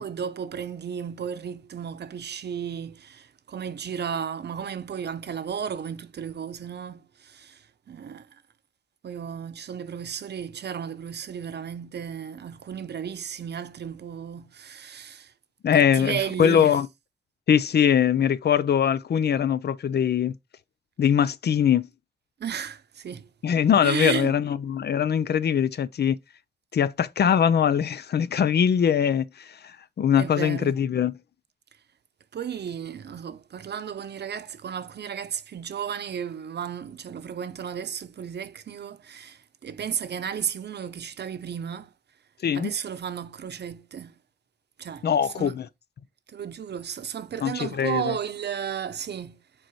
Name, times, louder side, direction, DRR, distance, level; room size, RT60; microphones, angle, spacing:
voice 1, 0.0-8.3 9.0-15.3 15.7-16.7 22.4-23.3 23.8-24.4 30.2-30.8 32.3-41.9 42.5-44.2 44.8-45.1 45.3-45.6 46.3-49.4, right 8 dB, 80° right, 0.8 m, -34 dB
voice 2, 15.6-16.9 17.5-20.3 21.0-21.9 23.4-26.2 26.7-31.1 42.4-42.7 45.0-45.7 47.4-48.2, left 8 dB, 70° left, 0.6 m, -22 dB
7.6 x 4.5 x 3.1 m
wide cardioid pair, 90°, 17 cm